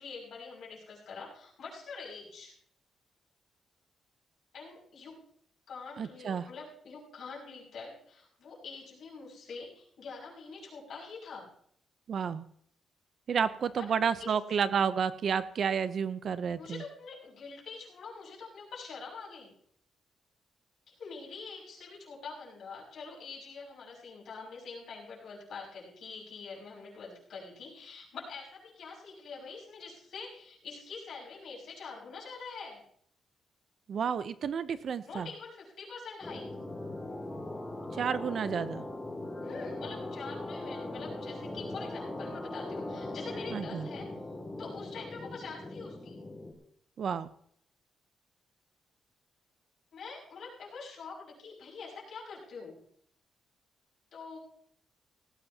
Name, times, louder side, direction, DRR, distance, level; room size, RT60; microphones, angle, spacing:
voice 1, 0.0-2.5 4.5-5.2 5.7-11.5 13.8-14.3 16.6-19.5 20.9-32.8 35.0-36.5 39.4-44.1 44.6-46.2 49.9-52.8 54.1-54.4, left 4 dB, 55° left, -3 dB, 6.1 m, -45 dB
voice 2, 6.0-6.4 12.1-12.4 13.3-16.8 33.9-35.3 37.9-38.8 43.5-43.9 47.0-47.3, right 7 dB, 45° right, 14 dB, 0.6 m, -31 dB
sound 1, 36.2-46.5, left 2 dB, 10° left, 2.1 m, -40 dB
18.0 x 15.5 x 2.8 m, 0.65 s
wide cardioid pair, 175°, 0 cm